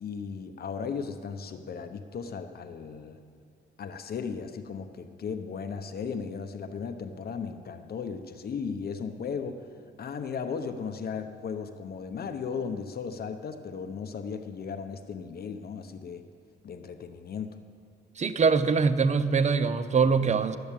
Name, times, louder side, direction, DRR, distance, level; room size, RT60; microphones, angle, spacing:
voice 1, 0.0-3.2 3.8-9.7 10.0-16.2 16.6-17.6, left 6 dB, 50° left, 8 dB, 0.8 m, -36 dB
voice 2, 18.2-20.6, right 5 dB, 35° right, 12 dB, 0.7 m, -23 dB
12.0 x 7.9 x 8.9 m, 2.2 s
cardioid pair, 90°, 20 cm